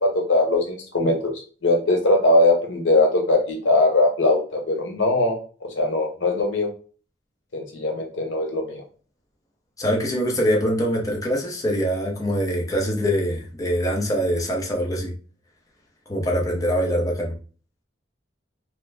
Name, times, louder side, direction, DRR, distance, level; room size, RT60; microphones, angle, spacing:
voice 1, 0.0-1.3 1.6-6.7 7.5-8.8, left 2 dB, 80° left, 2 dB, 0.9 m, -21 dB
voice 2, 9.8-15.1 16.1-17.3, equal, 20° left, -2 dB, 0.7 m, -23 dB
3.0 x 2.2 x 3.3 m, 0.39 s
head